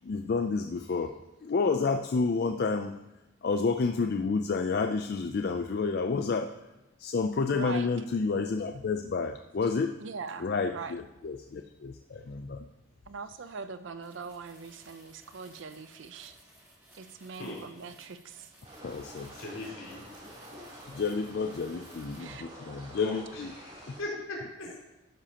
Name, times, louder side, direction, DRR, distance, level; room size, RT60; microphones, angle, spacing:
voice 1, 0.0-1.1 1.4-2.9 3.4-6.5 7.0-9.9 10.4-12.7 18.8-19.4 20.9-23.5, left 4 dB, 50° left, 5 dB, 0.4 m, -30 dB
voice 2, 7.5-7.9 10.0-11.0 13.1-16.4 16.9-18.5 22.2-22.5, right 4 dB, 65° right, 11 dB, 0.6 m, -42 dB
sound 1, 14.0-22.4, right 1 dB, 10° right, 3.9 m, -58 dB
sound 2, 18.6-24.0, equal, 35° right, 3.3 m, -48 dB
voice 3, 19.4-20.0 22.9-24.8, left 2 dB, 80° left, -4 dB, 3.8 m, -39 dB
12.0 x 10.0 x 2.9 m, 1.0 s
head